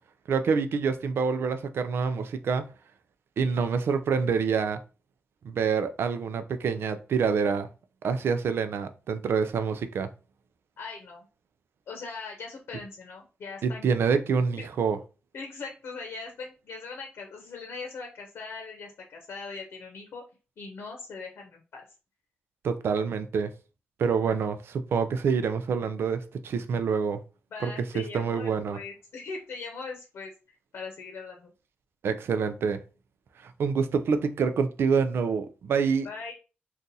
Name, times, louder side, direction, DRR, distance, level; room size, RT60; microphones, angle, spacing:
voice 1, 0.3-2.7 3.4-4.8 5.4-7.7 8.0-10.1 13.6-15.0 22.6-23.5 24.0-27.2 27.6-28.8 32.0-32.8 33.4-36.1, right 5 dB, 80° right, 0.4 m, -26 dB
voice 2, 10.8-11.2 11.9-13.8 14.6-14.7 15.3-20.2 20.6-21.8 27.5-31.5 36.0-36.3, left 4 dB, 80° left, 0.8 m, -40 dB
2.7 x 2.4 x 3.9 m
cardioid pair, 75°, 4 cm